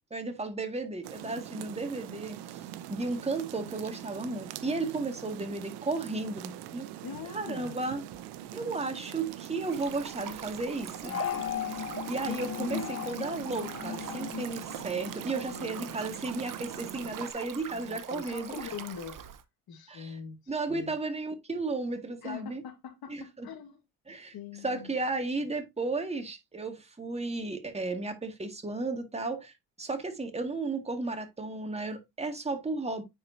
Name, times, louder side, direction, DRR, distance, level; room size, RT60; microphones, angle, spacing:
voice 1, 0.1-2.6 2.9-6.9 7.3-8.1 8.5-11.2 12.1-18.6 19.9-20.2 20.5-22.6 23.1-23.5 24.1-24.4 24.6-33.0, right 3 dB, 15° right, 2.0 m, -34 dB
sound 1, 1.0-17.3, right 12 dB, 85° right, 0.8 m, -43 dB
voice 2, 7.0-7.9 15.5-16.0 17.7-19.2 19.7-21.0 22.2-23.8 24.3-24.9, left 6 dB, 65° left, 1.9 m, -43 dB
Stream, 9.6-19.4, right 9 dB, 55° right, 1.0 m, -43 dB
sound 2, 11.0-15.7, left 10 dB, 35° left, 0.6 m, -37 dB
9.3 x 4.7 x 2.7 m
cardioid pair, 95°, 39 cm